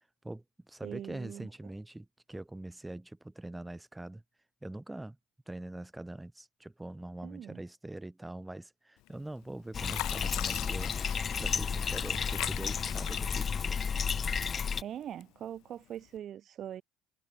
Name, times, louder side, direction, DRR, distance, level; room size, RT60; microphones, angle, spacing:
voice 1, 0.2-4.2 4.6-5.2 5.5-10.9 11.4-13.8, right 1 dB, 10° right, 4.5 m, -43 dB
voice 2, 0.8-1.7 7.2-7.6 14.8-16.8, right 10 dB, 45° right, 1.3 m, -42 dB
Fill (with liquid), 9.1-9.4 9.8-14.2 14.7-15.5 16.0-16.2, left 19 dB, 70° left, 1.7 m, -42 dB
Bathtub (filling or washing), 9.7-14.8, left 6 dB, 30° left, 0.5 m, -32 dB
supercardioid pair, 110°, 0 cm